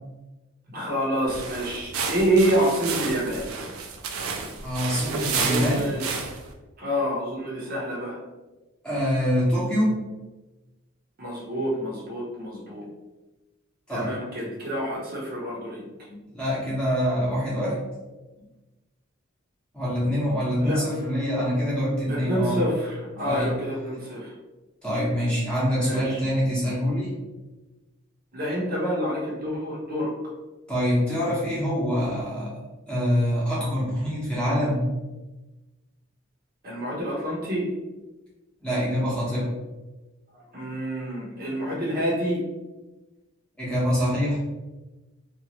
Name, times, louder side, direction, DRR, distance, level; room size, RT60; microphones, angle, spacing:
voice 1, 0.7-3.5 5.3-6.1 6.8-8.2 11.2-12.9 13.9-15.8 20.6-20.9 22.1-24.3 25.8-26.2 28.3-30.1 36.6-37.7 40.3-42.4, right 1 dB, 45° right, -4 dB, 0.7 m, -27 dB
sound 1, 1.3-6.5, right 5 dB, 90° right, 0.4 m, -31 dB
voice 2, 4.6-5.9 8.8-10.1 13.9-14.2 16.1-17.8 19.7-22.6 23.2-23.5 24.8-27.1 30.7-32.5 32.9-34.9 38.6-39.5 43.6-44.4, equal, 5° left, -8 dB, 0.8 m, -25 dB
2.8 x 2.3 x 2.8 m, 1.1 s
head